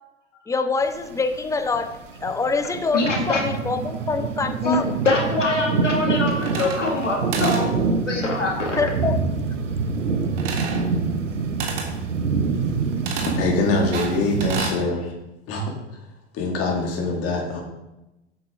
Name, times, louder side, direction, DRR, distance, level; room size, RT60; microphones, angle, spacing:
voice 1, 0.5-4.9 8.7-9.2, left 4 dB, 10° left, 9 dB, 0.5 m, -25 dB
sound 1, 0.8-14.7, right 4 dB, 80° right, 0.8 m, -26 dB
voice 2, 2.9-3.4 4.6-7.7 8.1-8.9, left 2 dB, 85° left, -1 dB, 1.9 m, -23 dB
sound 2, 3.1-12.3, right 7 dB, 30° right, 0.7 m, -35 dB
sound 3, 6.4-7.1 7.3-7.7 10.4-10.8 11.6-11.9 13.1-13.4 13.9-14.8, right 5 dB, 50° right, 1.8 m, -30 dB
voice 3, 13.1-15.1 15.5-15.7 16.3-17.6, left 3 dB, 40° left, 0 dB, 2.2 m, -24 dB
8.0 x 6.2 x 3.7 m, 0.97 s
figure-of-eight pair, 80°, 36 cm